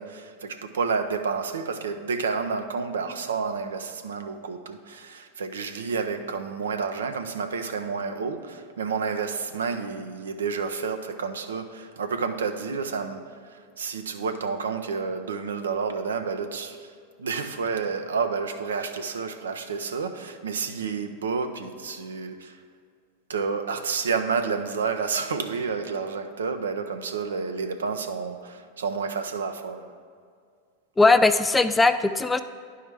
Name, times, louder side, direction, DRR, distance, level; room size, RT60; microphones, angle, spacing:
voice 1, 0.0-22.6 23.3-29.9, right 5 dB, 80° right, 7 dB, 0.5 m, -30 dB
voice 2, 31.0-32.4, left 3 dB, 10° left, 11 dB, 0.3 m, -19 dB
10.5 x 4.7 x 3.4 m, 2.1 s
hypercardioid pair, 95°, 0 cm